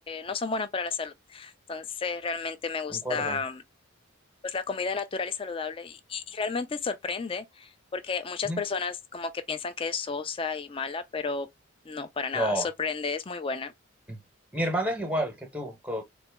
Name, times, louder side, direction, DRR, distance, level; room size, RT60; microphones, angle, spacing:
voice 1, 0.1-3.6 4.4-11.5 11.9-13.7, left 5 dB, 25° left, 0.4 m, -32 dB
voice 2, 2.9-3.4 8.4-8.6 12.3-12.7 14.1-14.2 14.5-16.0, right 1 dB, 5° right, 0.9 m, -30 dB
4.0 x 2.2 x 3.4 m
head